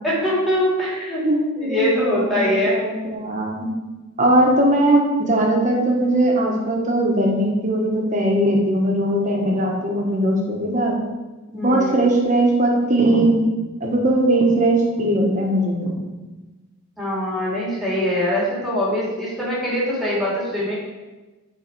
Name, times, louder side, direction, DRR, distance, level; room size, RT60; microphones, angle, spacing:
voice 1, 0.0-1.2 1.6-2.8 11.5-12.0 17.0-20.8, left 1 dB, ahead, -7 dB, 2.6 m, -22 dB
voice 2, 1.2-3.7 4.2-10.9 11.5-13.4 13.8-16.0, right 1 dB, 35° right, -1 dB, 1.4 m, -19 dB
9.9 x 4.1 x 4.6 m, 1.2 s
head